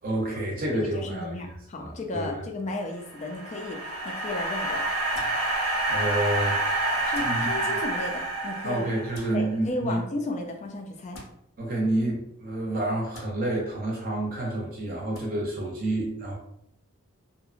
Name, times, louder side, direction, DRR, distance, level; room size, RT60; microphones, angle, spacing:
voice 1, 0.0-1.5 1.8-2.4 5.9-6.8 7.2-7.8 8.6-10.0 11.6-16.3, right 1 dB, 40° right, -2 dB, 0.5 m, -29 dB
voice 2, 1.0-4.8 7.0-8.8 9.3-11.2, left 2 dB, 35° left, 2 dB, 0.3 m, -34 dB
sound 1, 3.0-9.4, right 2 dB, 85° right, 0.7 m, -28 dB
sound 2, 5.1-5.4 7.1-7.4 9.1-9.3 11.1-11.3 13.1-13.3 15.1-15.2, left 2 dB, 70° left, 0.7 m, -43 dB
2.7 x 2.1 x 2.4 m, 0.74 s
head